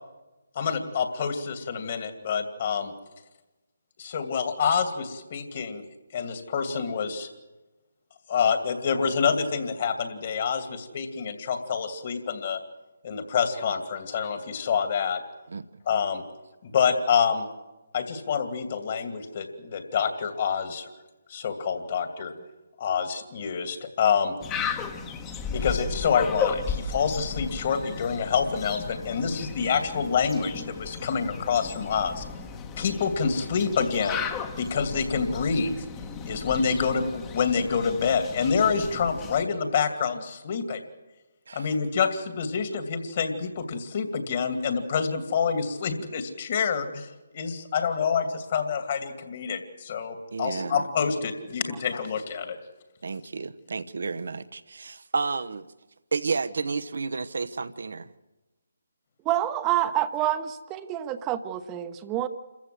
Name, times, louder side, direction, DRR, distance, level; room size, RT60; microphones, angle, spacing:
voice 1, 0.5-2.9 4.0-5.8 6.1-7.3 8.3-12.6 13.0-15.2 15.9-16.2 16.6-17.5 17.9-20.9 21.3-22.3 22.8-24.3 25.5-32.2 32.8-34.3 34.6-35.7 36.3-40.8 41.5-47.1 47.3-52.6, left 6 dB, 45° left, 7 dB, 2.5 m, -27 dB
sound 1, 24.4-39.4, left 6 dB, 15° left, 1.3 m, -35 dB
voice 2, 50.3-50.8 53.0-55.7 56.1-58.1, right 4 dB, 65° right, 13 dB, 1.0 m, -31 dB
voice 3, 59.2-62.3, right 13 dB, 20° right, 10 dB, 1.0 m, -27 dB
27.5 x 15.0 x 7.8 m, 1.1 s
figure-of-eight pair, 150°, 0 cm